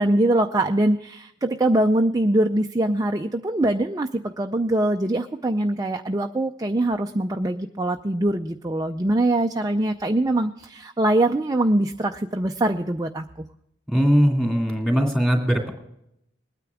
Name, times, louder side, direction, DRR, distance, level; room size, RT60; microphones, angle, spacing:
voice 1, 0.0-13.5, right 1 dB, 20° right, 4 dB, 0.5 m, -23 dB
voice 2, 13.9-15.7, equal, 5° left, 1 dB, 2.5 m, -20 dB
21.5 x 9.5 x 3.5 m, 0.80 s
head